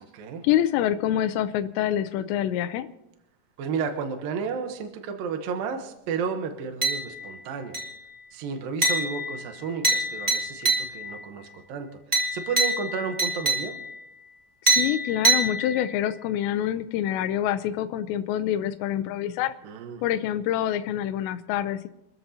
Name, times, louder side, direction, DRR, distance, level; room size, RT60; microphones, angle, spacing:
voice 1, 0.4-2.9 14.6-19.5 20.0-21.9, left 11 dB, 85° left, 8 dB, 2.8 m, -26 dB
voice 2, 3.6-7.8 8.3-13.7 19.6-20.0, right 6 dB, 70° right, 5 dB, 2.4 m, -32 dB
sound 1, 6.8-7.4 7.7-8.2 8.8-11.2 12.1-14.0 14.7-16.1, right 2 dB, 10° right, 1.3 m, -26 dB
28.0 x 13.5 x 2.8 m, 0.87 s
omnidirectional pair, 5.0 m